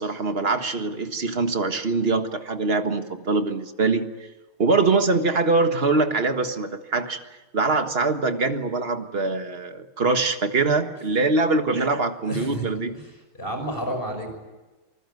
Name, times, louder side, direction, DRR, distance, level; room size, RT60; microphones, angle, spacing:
voice 1, 0.0-4.1 4.6-7.2 7.5-13.0, right 3 dB, 30° right, 7 dB, 1.6 m, -23 dB
voice 2, 12.3-12.7 12.9-13.0 13.4-14.3, equal, 25° left, 4 dB, 6.4 m, -30 dB
28.5 x 20.0 x 9.6 m, 1.2 s
omnidirectional pair, 2.2 m